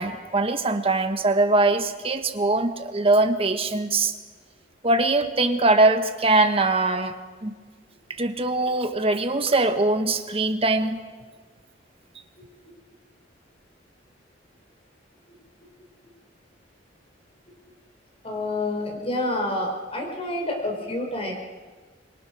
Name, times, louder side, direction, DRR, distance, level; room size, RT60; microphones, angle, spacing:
voice 1, 0.0-4.1 4.8-7.1 7.4-7.5 8.2-11.0, right 2 dB, 30° right, 7 dB, 1.4 m, -22 dB
voice 2, 18.2-21.3, left 1 dB, 30° left, 2 dB, 4.4 m, -28 dB
25.5 x 22.5 x 6.3 m, 1.5 s
head